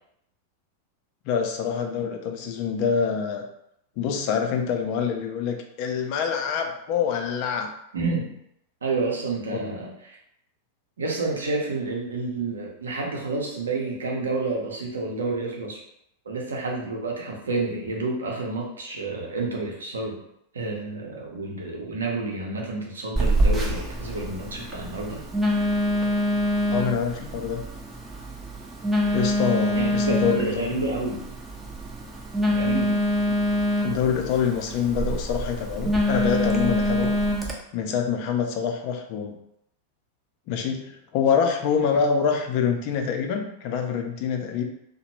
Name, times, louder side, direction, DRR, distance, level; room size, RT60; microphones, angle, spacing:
voice 1, 1.3-3.4 4.0-7.7 9.5-9.7 26.7-27.6 29.1-30.8 33.8-37.2 37.7-39.3 40.5-44.6, left 7 dB, 45° left, 4 dB, 0.4 m, -26 dB
voice 2, 7.9-8.3 8.8-10.2 11.0-15.8 16.2-20.2 20.5-25.2 29.7-31.2 32.5-33.0, right 3 dB, 70° right, -1 dB, 0.7 m, -29 dB
Telephone, 23.2-37.5, equal, 10° right, 0.5 m, -25 dB
2.8 x 2.1 x 3.0 m, 0.76 s
figure-of-eight pair, 90°, 0 cm